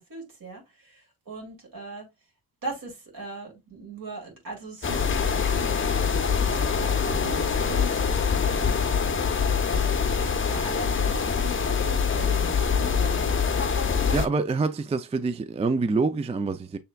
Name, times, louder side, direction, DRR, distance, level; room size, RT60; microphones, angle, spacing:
voice 1, 0.0-2.1 2.6-9.0 9.7-9.9 10.5-14.1, right 2 dB, 60° right, 2.5 m, -40 dB
sound 1, 4.8-14.3, left 6 dB, 30° left, 0.6 m, -24 dB
voice 2, 14.1-16.8, right 4 dB, 20° right, 0.3 m, -26 dB
6.8 x 3.3 x 2.2 m
wide cardioid pair, 110°, 38 cm